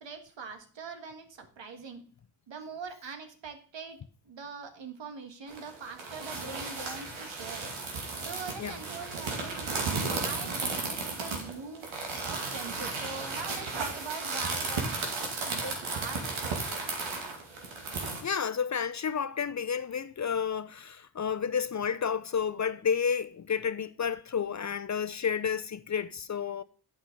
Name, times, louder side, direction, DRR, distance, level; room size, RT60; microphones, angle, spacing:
voice 1, 0.0-2.0 2.5-4.0 4.2-7.7 8.2-11.9 12.2-16.8, right 5 dB, 65° right, 1.7 m, -42 dB
sound 1, 5.5-18.2, right 3 dB, 85° right, 2.4 m, -34 dB
voice 2, 18.2-26.6, left 7 dB, 40° left, 0.6 m, -31 dB
8.7 x 6.1 x 5.3 m
cardioid pair, 65°, 47 cm